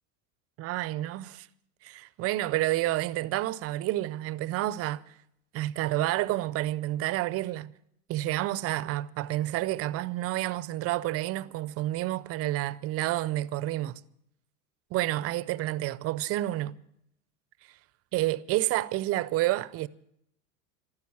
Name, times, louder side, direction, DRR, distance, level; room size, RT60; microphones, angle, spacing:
voice 1, 0.6-1.5 1.8-5.0 5.5-7.7 8.1-13.9 14.9-16.8 18.1-19.9, right 16 dB, 30° right, 0.5 m, -29 dB
14.5 x 12.5 x 7.1 m
hypercardioid pair, 105°, 47 cm